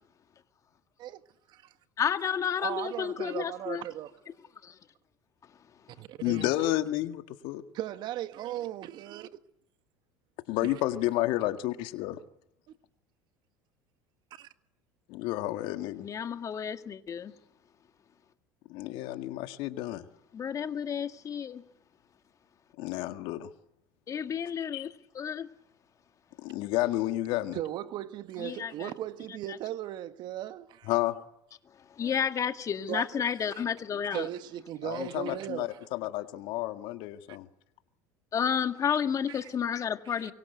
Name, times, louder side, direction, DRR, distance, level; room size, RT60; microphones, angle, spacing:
voice 1, 2.0-3.8 4.6-4.8 16.0-17.3 20.3-21.6 24.1-25.5 28.4-28.9 32.0-34.3 38.3-40.3, left 8 dB, 35° left, 1.9 m, -31 dB
voice 2, 2.6-4.1 6.0-6.5 7.7-9.3 10.6-10.7 14.3-14.5 27.5-30.9 32.9-33.2 33.5-33.6 34.1-35.8 37.3-37.4 39.3-39.4 40.0-40.3, right 12 dB, 55° right, 1.5 m, -37 dB
voice 3, 6.2-7.6 10.5-12.2 15.1-16.1 18.7-20.0 22.8-23.5 24.7-24.9 26.4-27.6 30.9-31.2 34.8-37.5, left 16 dB, 65° left, 1.9 m, -31 dB
24.5 x 22.5 x 8.0 m
hypercardioid pair, 80°, 9 cm